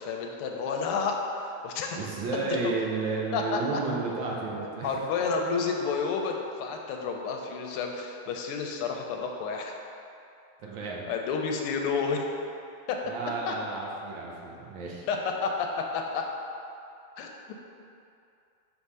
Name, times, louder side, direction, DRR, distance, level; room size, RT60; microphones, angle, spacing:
voice 1, 0.0-2.0 2.4-2.7 3.3-3.6 4.8-9.7 11.1-12.2 12.9-13.0 13.5-13.6 15.1-16.2 17.2-17.5, left 5 dB, 90° left, 2 dB, 1.5 m, -30 dB
voice 2, 1.9-4.9 10.6-11.0 13.0-15.1, right 3 dB, 70° right, -2 dB, 1.4 m, -32 dB
4.8 x 3.6 x 5.4 m, 2.6 s
omnidirectional pair, 2.4 m